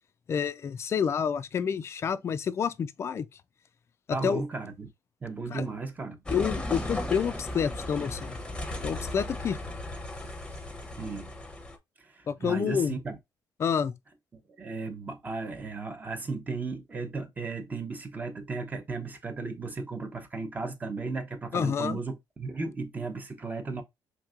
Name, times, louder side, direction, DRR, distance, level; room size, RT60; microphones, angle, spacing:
voice 1, 0.3-3.3 4.1-4.4 5.5-5.7 6.3-8.4 8.8-9.6 12.3-13.0 13.6-13.9 21.5-22.0, left 7 dB, 35° left, 0.4 m, -28 dB
voice 2, 4.1-4.9 5.2-6.2 11.0-11.3 12.0-13.2 14.3-23.8, right 3 dB, 20° right, 0.8 m, -35 dB
sound 1, 6.3-11.8, left 1 dB, 10° left, 0.8 m, -36 dB
4.5 x 3.6 x 2.4 m
cardioid pair, 135°, 8 cm